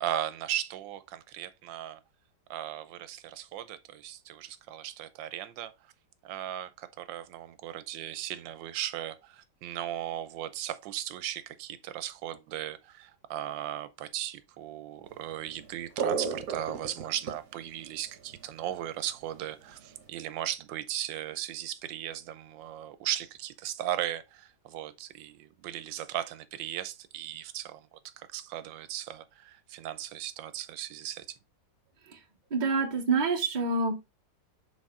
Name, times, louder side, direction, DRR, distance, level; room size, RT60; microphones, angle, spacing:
voice 1, 0.0-2.0 2.5-5.7 6.2-31.4, right 12 dB, 90° right, 1.3 m, -37 dB
sound 1, 15.2-15.3 15.6-19.0 19.3-20.1, right 5 dB, 55° right, 1.6 m, -33 dB
voice 2, 32.5-34.0, right 4 dB, 30° right, 1.0 m, -27 dB
6.3 x 4.1 x 3.7 m
omnidirectional pair, 2.0 m